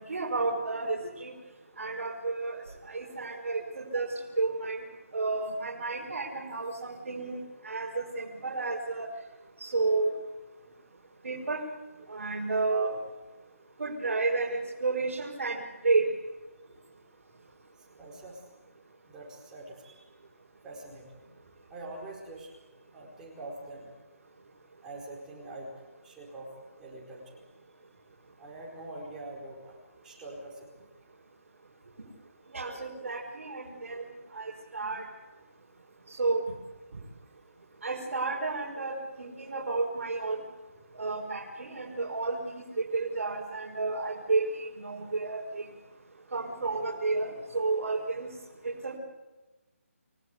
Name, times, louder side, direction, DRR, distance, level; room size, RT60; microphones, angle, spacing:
voice 1, 0.1-1.3 1.8-2.6 2.9-4.1 4.4-4.8 5.1-9.1 9.6-10.1 11.2-11.6 12.1-12.9 13.8-16.1 32.5-34.0 34.3-35.0 36.2-36.4 37.8-40.4 41.0-42.6 42.9-45.6 46.3-48.3 48.6-49.0, right 3 dB, 65° right, -3 dB, 5.5 m, -31 dB
voice 2, 18.0-18.4 19.1-20.0 20.6-21.2 21.7-22.5 22.9-23.9 24.8-25.7 26.0-26.5 26.8-27.4 28.4-30.9, right 2 dB, 5° right, -4 dB, 4.8 m, -44 dB
29.5 x 18.0 x 8.4 m, 1.1 s
hypercardioid pair, 170°, 8 cm